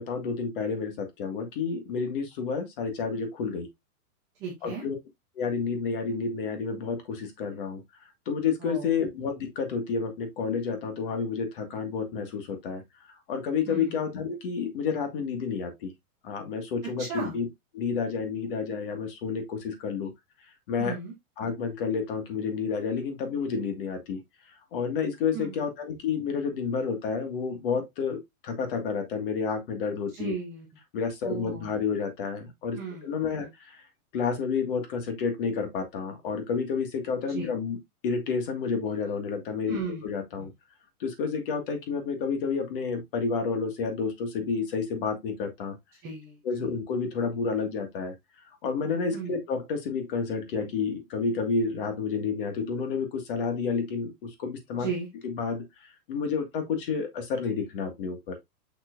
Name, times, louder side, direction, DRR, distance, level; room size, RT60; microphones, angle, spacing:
voice 1, 0.0-3.7 4.6-5.0 5.4-7.8 8.3-12.8 13.1-15.9 16.2-17.5 17.7-20.1 20.7-20.9 21.4-24.2 24.7-30.3 30.9-33.8 34.1-39.8 40.0-40.5 41.0-45.8 46.4-48.1 48.6-54.9 55.2-58.4, left 5 dB, 35° left, 1.9 m, -30 dB
voice 2, 4.4-4.8 8.6-8.9 13.7-14.0 17.0-17.4 20.8-21.1 25.3-25.6 30.1-30.7 31.2-31.7 32.8-33.1 33.4-33.5 37.3-37.5 39.7-40.1 40.4-40.5 46.0-46.4 49.1-49.4 54.7-55.1, right 5 dB, 5° right, 0.5 m, -35 dB
6.7 x 6.0 x 2.5 m
supercardioid pair, 175°, 45 cm